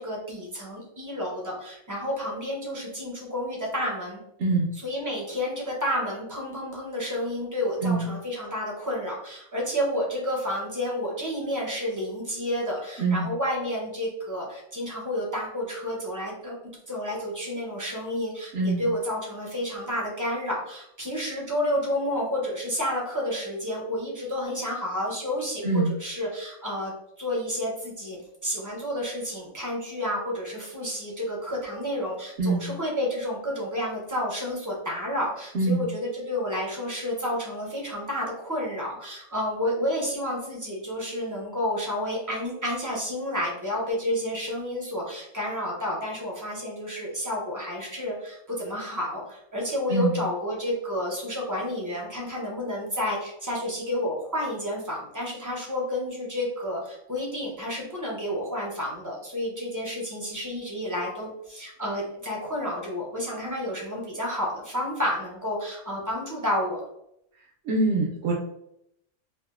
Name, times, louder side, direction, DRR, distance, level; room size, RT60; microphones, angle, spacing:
voice 1, 0.0-4.2 4.8-16.6 16.9-66.8, left 1 dB, 20° right, -4 dB, 0.5 m, -30 dB
voice 2, 18.5-18.8 25.6-25.9 32.4-32.7 35.5-35.8 49.9-50.2 67.7-68.3, right 3 dB, 65° right, -3 dB, 0.7 m, -24 dB
2.7 x 2.3 x 2.3 m, 0.76 s
omnidirectional pair, 1.4 m